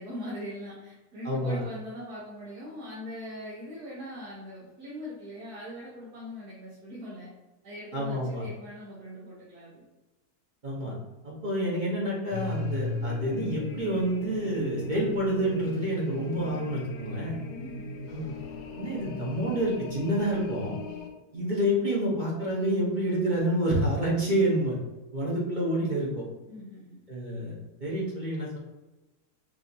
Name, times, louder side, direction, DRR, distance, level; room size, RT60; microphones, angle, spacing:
voice 1, 0.0-7.3 7.6-9.9 17.5-17.9 26.5-27.0, equal, 90° right, -8 dB, 1.8 m, -41 dB
voice 2, 1.2-1.6 7.9-8.4 10.6-10.9 11.2-17.3 18.1-18.3 18.8-20.7 21.3-24.7 25.1-26.2 27.1-28.6, right 1 dB, 35° right, -5 dB, 1.0 m, -28 dB
sound 1, 12.3-21.1, left 2 dB, 70° left, 1.0 m, -37 dB
5.8 x 2.8 x 2.7 m, 1.1 s
omnidirectional pair, 1.6 m